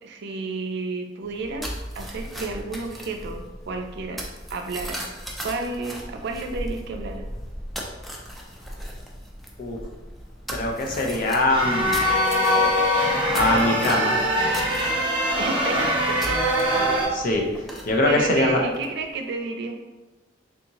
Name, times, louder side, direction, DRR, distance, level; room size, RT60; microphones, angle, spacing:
voice 1, 0.0-5.1 5.4-7.2 15.4-16.2 18.0-19.8, right 3 dB, 60° right, 4 dB, 0.4 m, -31 dB
sound 1, 1.2-19.2, equal, ahead, 0.4 m, -37 dB
voice 2, 10.5-12.0 13.3-14.2 17.1-17.4 17.9-18.6, left 2 dB, 50° left, 1 dB, 0.6 m, -22 dB
sound 2, 11.5-17.0, equal, 30° right, 0.8 m, -22 dB
3.5 x 2.7 x 2.9 m, 1.1 s
head